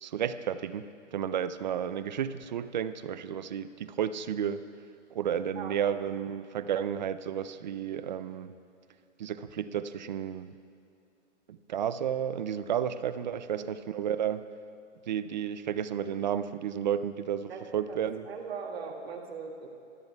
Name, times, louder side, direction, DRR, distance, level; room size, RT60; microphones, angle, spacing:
voice 1, 0.0-4.6 5.1-8.5 9.2-10.5 11.5-14.5 15.1-18.2, right 9 dB, 40° right, 13 dB, 0.5 m, -32 dB
voice 2, 17.5-19.7, right 5 dB, 55° right, 1 dB, 2.1 m, -40 dB
25.0 x 13.5 x 2.3 m, 2.6 s
hypercardioid pair, 145°, 37 cm